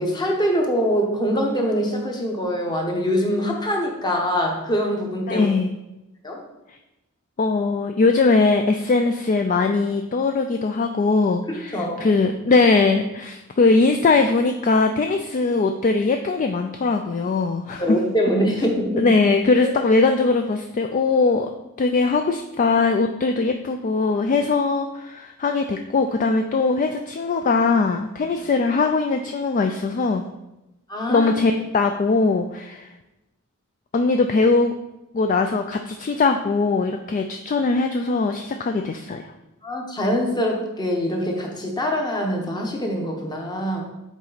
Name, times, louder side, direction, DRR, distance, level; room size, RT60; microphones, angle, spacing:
voice 1, 0.0-5.5 6.2-6.4 11.5-12.0 17.8-19.1 19.6-19.7 30.9-31.3 39.6-43.8, equal, 20° left, 1 dB, 1.0 m, -24 dB
voice 2, 5.3-5.7 6.7-6.8 7.4-18.0 19.0-21.5 21.8-30.2 31.1-32.9 33.9-34.7 35.1-39.3, left 3 dB, 35° left, 5 dB, 0.3 m, -20 dB
7.3 x 4.3 x 3.9 m, 0.95 s
head